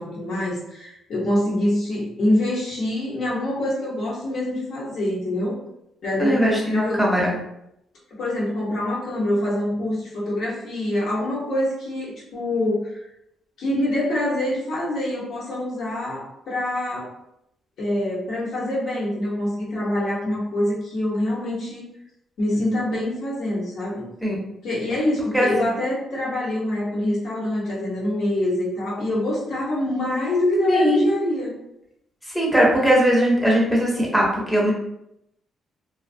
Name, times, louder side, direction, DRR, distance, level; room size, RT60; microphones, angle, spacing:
voice 1, 0.0-5.6 6.0-7.0 8.2-13.0 13.6-17.1 17.8-21.8 22.4-24.0 24.6-31.6, left 1 dB, 70° left, -6 dB, 1.1 m, -25 dB
voice 2, 6.2-7.4 24.2-24.4 25.3-25.5 30.7-31.0 32.3-34.7, equal, ahead, -4 dB, 0.7 m, -19 dB
2.4 x 2.3 x 2.5 m, 0.81 s
cardioid pair, 90°, 0 cm